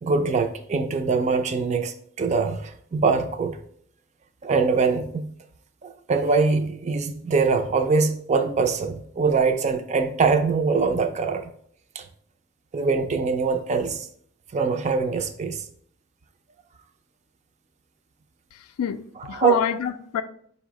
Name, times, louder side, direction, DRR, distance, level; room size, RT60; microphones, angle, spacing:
voice 1, 0.0-3.6 4.4-5.3 5.8-11.5 12.0-12.1 12.7-14.1 14.5-15.6 19.3-19.6, right 4 dB, 30° right, 0.4 m, -23 dB
voice 2, 18.5-20.2, left 8 dB, 80° left, 0.3 m, -27 dB
5.2 x 2.0 x 4.7 m
head